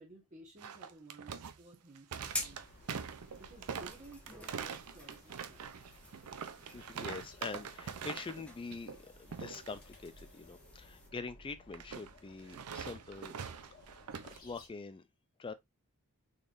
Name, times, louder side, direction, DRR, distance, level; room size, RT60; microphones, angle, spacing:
voice 1, 0.0-2.6 3.4-5.7, right 2 dB, 35° right, 1.2 m, -55 dB
sound 1, 0.6-8.4 8.7-9.0 9.3-9.7 11.7-14.4, right 6 dB, 80° right, 0.5 m, -44 dB
sound 2, 2.1-11.1, left 1 dB, 5° left, 0.9 m, -49 dB
sound 3, 2.2-14.7, left 1 dB, 40° left, 1.5 m, -59 dB
voice 2, 6.7-13.4 13.9-14.0 14.2-15.1 15.4-15.5, left 4 dB, 25° left, 0.4 m, -44 dB
4.0 x 3.4 x 2.5 m
head